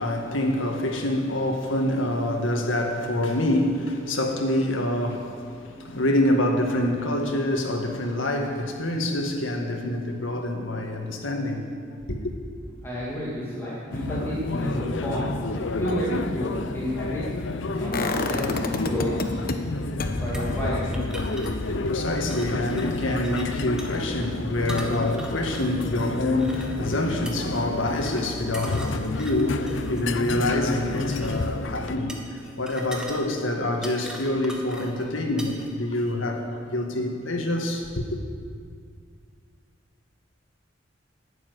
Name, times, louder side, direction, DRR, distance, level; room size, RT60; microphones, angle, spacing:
voice 1, 0.0-11.7 12.1-12.3 21.2-38.2, left 1 dB, 90° left, 1.8 m, -26 dB
voice 2, 12.8-17.2 17.7-19.4 20.2-20.9, equal, 15° left, 2.4 m, -31 dB
sound 1, 13.9-32.0, left 2 dB, 70° left, 0.7 m, -30 dB
sound 2, 17.9-19.5 20.0-25.8 26.2-26.3, left 2 dB, 50° left, 1.0 m, -33 dB
sound 3, 20.3-35.7, right 1 dB, 5° right, 1.5 m, -43 dB
11.5 x 8.7 x 9.6 m
head